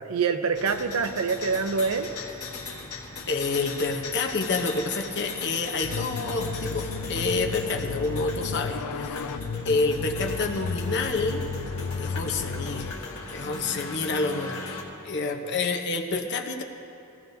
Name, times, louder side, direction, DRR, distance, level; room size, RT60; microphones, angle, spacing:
voice 1, 0.0-2.1 15.3-15.6, right 5 dB, 70° right, 9 dB, 0.6 m, -26 dB
sound 1, 0.5-14.8, left 3 dB, 70° left, 1.5 m, -38 dB
voice 2, 3.3-11.4 12.0-13.0 13.3-14.6 15.0-16.6, left 3 dB, 55° left, 3 dB, 0.9 m, -28 dB
sound 2, 5.8-12.9, left 5 dB, 85° left, 0.5 m, -33 dB
16.5 x 14.5 x 2.7 m, 2.7 s
head